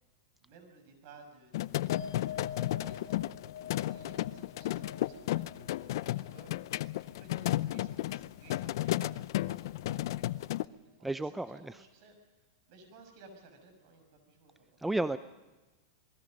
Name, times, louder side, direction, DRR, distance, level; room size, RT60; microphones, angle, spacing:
voice 1, 0.4-3.3 3.7-10.2 10.6-12.4 12.7-14.8, right 3 dB, 55° right, 5 dB, 6.5 m, -57 dB
sound 1, 1.5-10.6, left 15 dB, 65° left, 0.6 m, -33 dB
sound 2, 1.9-8.6 8.9-9.5, left 7 dB, 85° left, 3.3 m, -47 dB
voice 2, 11.0-11.8 14.8-15.2, right 2 dB, 5° right, 13 dB, 0.6 m, -33 dB
27.5 x 20.0 x 5.3 m, 1.2 s
supercardioid pair, 135°, 2 cm